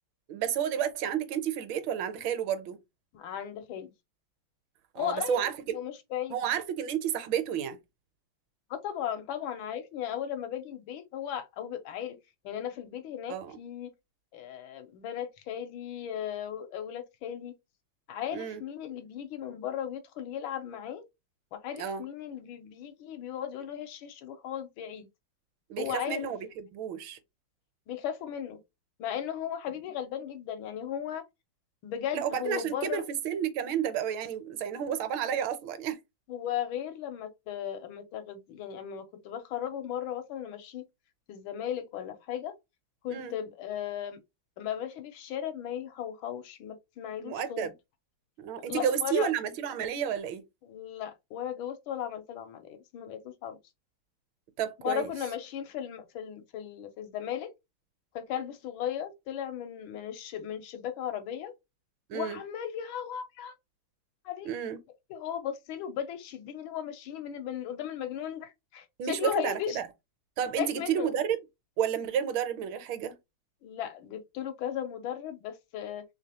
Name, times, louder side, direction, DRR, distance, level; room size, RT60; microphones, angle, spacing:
voice 1, 0.3-2.8 4.9-5.5 6.3-7.8 13.3-13.6 18.3-18.6 21.8-22.0 25.7-27.2 32.1-36.0 43.1-43.3 47.2-47.7 48.4-50.4 54.6-55.1 62.1-62.4 64.4-64.8 69.0-69.8 70.4-71.4 71.8-73.1, right 8 dB, 75° right, 1.4 m, -31 dB
voice 2, 3.1-3.9 5.0-6.4 8.7-12.2 12.4-13.9 14.3-17.5 18.1-21.0 21.5-25.1 25.8-26.3 27.9-28.6 29.0-31.2 31.8-33.0 36.3-40.8 41.3-42.5 43.0-44.2 44.6-47.7 48.7-49.3 50.6-53.6 54.8-57.5 58.1-61.5 62.1-63.5 64.2-64.5 65.1-69.8 70.6-71.1 73.6-76.0, left 10 dB, 85° left, 1.5 m, -36 dB
3.5 x 3.3 x 2.8 m
omnidirectional pair, 2.2 m